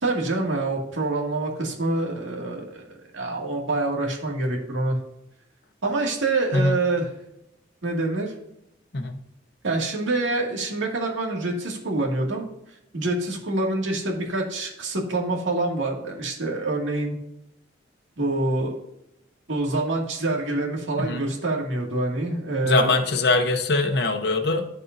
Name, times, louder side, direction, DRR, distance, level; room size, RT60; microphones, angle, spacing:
voice 1, 0.0-5.0 5.8-7.1 7.8-8.3 9.6-12.5 12.9-17.2 18.2-18.7 19.5-23.1, right 2 dB, 85° right, -1 dB, 2.2 m, -26 dB
voice 2, 22.6-24.7, left 3 dB, 55° left, 4 dB, 0.9 m, -22 dB
15.0 x 5.4 x 2.7 m, 0.83 s
head